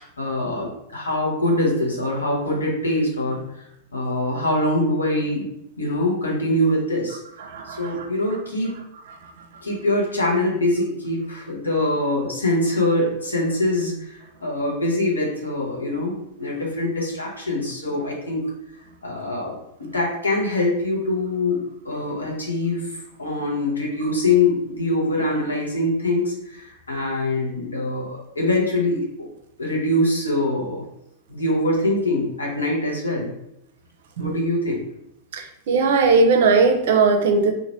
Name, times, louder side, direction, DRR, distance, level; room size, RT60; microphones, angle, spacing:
voice 1, 0.0-3.4 3.9-5.5 5.8-7.2 7.6-8.8 9.6-18.5 19.0-19.5 19.8-29.3 29.6-30.8 31.3-33.3 34.2-34.8, left 1 dB, 75° left, -3 dB, 0.9 m, -23 dB
voice 2, 7.4-8.1 34.2-34.3 35.3-37.5, right 4 dB, 55° right, 4 dB, 0.4 m, -19 dB
2.9 x 2.4 x 3.0 m, 0.80 s
figure-of-eight pair, 90°, 0 cm